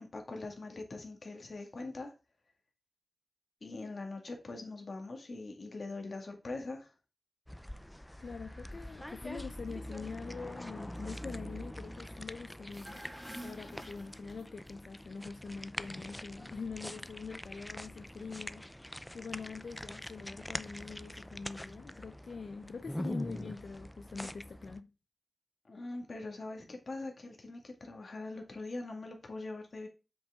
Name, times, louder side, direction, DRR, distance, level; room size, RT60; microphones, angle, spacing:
voice 1, 0.0-2.1 3.6-6.9 25.7-29.9, left 2 dB, 55° left, 2.0 m, -42 dB
sound 1, 7.5-24.8, equal, 5° left, 0.4 m, -44 dB
voice 2, 8.2-13.0 13.4-18.6 19.1-24.9, left 5 dB, 75° left, 0.5 m, -44 dB
sound 2, 12.7-14.7, equal, 10° right, 4.8 m, -49 dB
7.9 x 6.0 x 3.7 m
wide cardioid pair, 100°, 0 cm